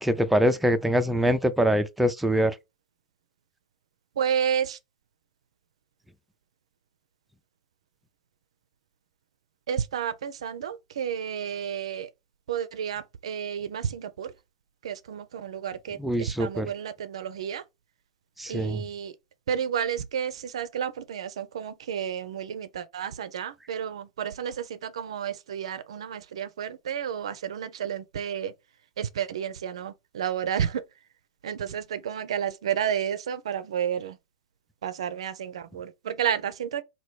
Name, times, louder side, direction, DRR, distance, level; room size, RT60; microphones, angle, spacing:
voice 1, 0.0-2.5 16.0-16.7 18.4-18.8, equal, 5° right, 0.4 m, -24 dB
voice 2, 4.2-4.8 9.7-12.1 12.5-14.3 14.8-17.6 18.5-19.1 19.5-28.5 29.0-30.8 31.4-34.1 34.8-36.8, right 8 dB, 75° right, 0.4 m, -31 dB
3.0 x 2.6 x 3.1 m
hypercardioid pair, 105°, 3 cm